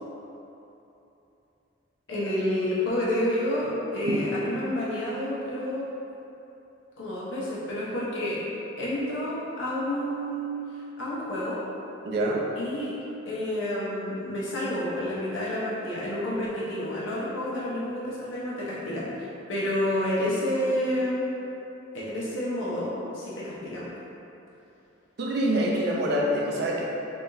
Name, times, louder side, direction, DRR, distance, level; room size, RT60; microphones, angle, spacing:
voice 1, 2.1-5.8 7.0-8.4 8.8-10.5 11.0-11.6 12.5-12.9 13.3-19.1 19.5-21.2 21.9-23.9, left 1 dB, 75° left, -8 dB, 0.9 m, -29 dB
voice 2, 12.0-12.4 25.2-26.8, right 1 dB, 55° right, -3 dB, 0.5 m, -25 dB
3.5 x 3.4 x 2.6 m, 3.0 s
head